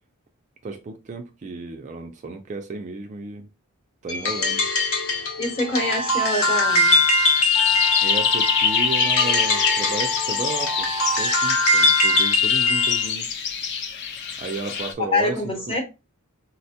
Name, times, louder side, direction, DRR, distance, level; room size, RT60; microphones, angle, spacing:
voice 1, 0.6-3.5 4.0-4.7 8.0-10.9 11.2-13.3 14.4-15.8, right 3 dB, 35° right, 0.3 m, -33 dB
sound 1, 4.1-13.1, left 2 dB, 70° left, 0.9 m, -22 dB
voice 2, 5.4-7.0 15.0-15.8, left 2 dB, 25° left, 0.9 m, -25 dB
sound 2, 6.7-14.9, left 6 dB, 50° left, 0.5 m, -26 dB
Wind instrument woodwind instrument, 7.5-11.3, left 1 dB, 85° left, 1.2 m, -32 dB
4.1 x 2.1 x 2.7 m
head